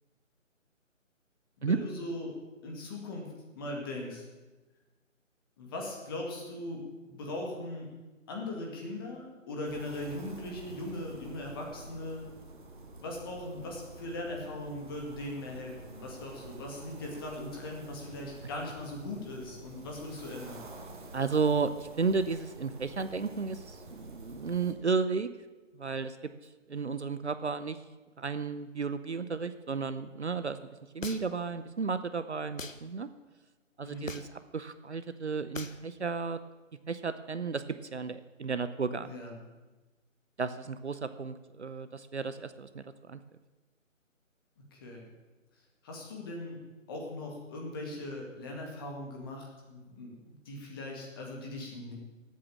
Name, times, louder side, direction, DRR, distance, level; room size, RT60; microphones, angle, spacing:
voice 1, 1.6-2.4 2.6-4.2 5.6-7.9 8.3-12.2 13.0-20.7 33.8-34.1 39.0-39.3 44.7-45.0 45.8-46.6 46.9-51.9, left 1 dB, 15° left, 0 dB, 2.1 m, -39 dB
sound 1, 9.6-24.7, right 2 dB, 40° right, 1.9 m, -48 dB
voice 2, 21.1-25.3 25.7-26.2 26.7-27.8 28.2-30.6 30.9-33.1 33.8-34.3 34.5-36.4 36.9-37.6 37.9-39.1 40.4-43.2, right 5 dB, 55° right, 12 dB, 0.8 m, -33 dB
sound 2, 31.0-31.5 32.6-32.8 34.1-34.4 35.5-35.8, left 3 dB, 75° left, 1.3 m, -40 dB
17.5 x 8.6 x 7.3 m, 1.2 s
figure-of-eight pair, 155°, 39 cm